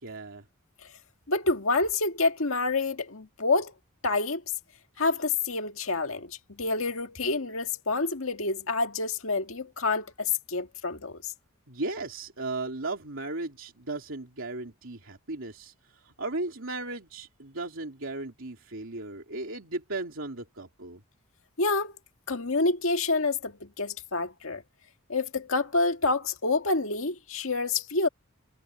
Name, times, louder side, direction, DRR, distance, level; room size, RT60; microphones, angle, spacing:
voice 1, 0.0-0.4 11.7-21.0, right 2 dB, 65° right, 3.3 m, -36 dB
voice 2, 1.3-3.7 4.0-4.4 5.0-11.3 21.6-21.9 22.3-24.6 25.1-28.1, left 3 dB, 70° left, 1.9 m, -28 dB
head